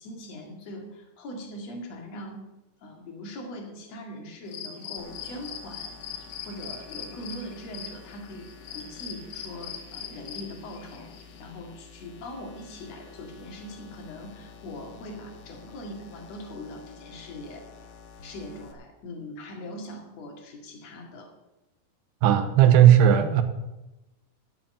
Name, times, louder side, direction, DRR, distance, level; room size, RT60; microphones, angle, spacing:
voice 1, 0.0-2.5 2.8-11.1 11.4-17.7 18.2-21.3, left 1 dB, 45° left, 2 dB, 2.8 m, -41 dB
sound 1, 4.5-11.4, left 7 dB, 80° left, 3.8 m, -41 dB
sound 2, 5.0-18.7, left 5 dB, 65° left, 2.2 m, -50 dB
voice 2, 22.2-23.4, right 10 dB, 80° right, 9 dB, 2.9 m, -16 dB
11.5 x 7.2 x 9.0 m, 1.0 s
omnidirectional pair, 5.0 m